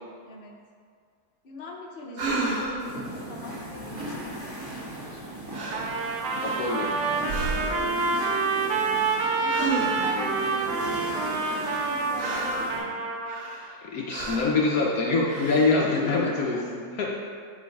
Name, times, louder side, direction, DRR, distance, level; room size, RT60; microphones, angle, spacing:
voice 1, 0.2-0.6 1.4-5.2 7.5-9.0 9.3-13.0 15.8-16.7, left 3 dB, 40° left, -2 dB, 1.0 m, -40 dB
sound 1, 2.2-2.9 5.0-5.2 5.5-5.9 6.3-6.9 7.2-8.0 9.5-10.2 11.4-12.7 13.2-13.8 14.1-14.6 15.2-15.8, right 3 dB, 60° right, 1.4 m, -32 dB
sound 2, 2.8-12.8, right 1 dB, 15° right, 1.7 m, -38 dB
Trumpet, 5.7-13.4, right 4 dB, 80° right, 1.3 m, -27 dB
voice 2, 6.4-6.9 10.0-10.4 13.9-17.1, left 3 dB, 65° left, -2 dB, 1.1 m, -25 dB
9.6 x 3.9 x 4.6 m, 2.1 s
omnidirectional pair, 1.8 m